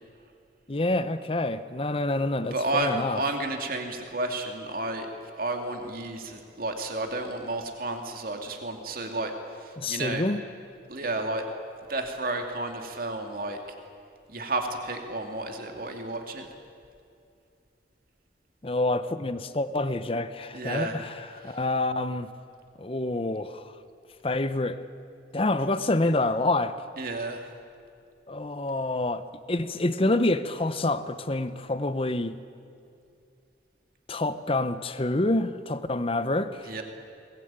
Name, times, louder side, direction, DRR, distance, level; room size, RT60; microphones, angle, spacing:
voice 1, 0.7-3.2 9.8-10.4 18.6-22.3 22.8-23.7 24.2-24.8 25.3-26.8 28.3-32.4 34.1-36.7, left 2 dB, 30° left, 12 dB, 0.8 m, -27 dB
voice 2, 2.5-5.1 5.4-10.2 10.9-11.5 11.9-13.6 14.3-16.5 20.5-21.0 21.4-21.6 27.0-27.5 36.7-36.8, right 2 dB, 55° right, 4 dB, 2.5 m, -31 dB
22.0 x 20.5 x 9.0 m, 2.5 s
head